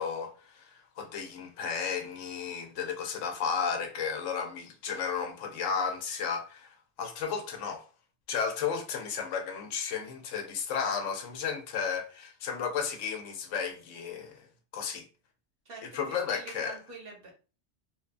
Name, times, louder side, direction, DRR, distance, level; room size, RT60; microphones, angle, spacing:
voice 1, 0.0-7.8 8.3-14.4 14.7-15.0 15.9-16.7, left 6 dB, 85° left, 1.0 m, -33 dB
voice 2, 15.6-17.3, right 3 dB, 55° right, 1.0 m, -45 dB
2.9 x 2.2 x 2.4 m
omnidirectional pair, 1.2 m